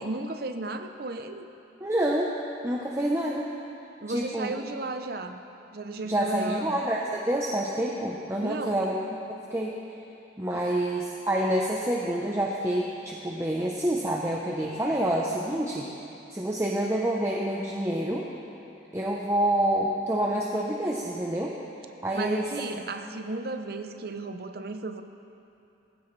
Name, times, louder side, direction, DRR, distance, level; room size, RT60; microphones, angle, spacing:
voice 1, 0.0-1.5 4.0-5.4 5.7-6.8 8.4-8.8 10.5-10.6 22.1-25.0, right 2 dB, 50° right, 7 dB, 0.7 m, -34 dB
voice 2, 1.8-2.3 2.6-3.5 4.1-4.5 6.0-8.9 9.5-9.7 10.4-15.9 16.3-18.3 18.9-21.5 22.0-22.5, right 1 dB, 15° right, -3 dB, 0.8 m, -27 dB
19.0 x 15.5 x 3.3 m, 2.8 s
head